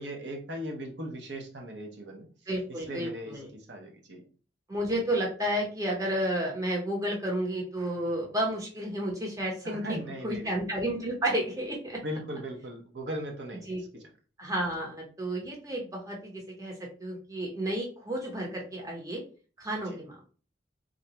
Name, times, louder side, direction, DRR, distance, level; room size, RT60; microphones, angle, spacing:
voice 1, 0.0-2.3 2.9-4.2 9.6-10.5 12.0-14.0 19.9-20.0, equal, 80° right, 2 dB, 0.8 m, -38 dB
voice 2, 2.5-3.5 4.7-9.8 10.2-12.0 13.7-13.8 14.4-16.7 17.0-19.2 19.6-20.1, right 1 dB, 20° right, -1 dB, 0.8 m, -31 dB
3.8 x 2.2 x 2.9 m, 0.38 s
head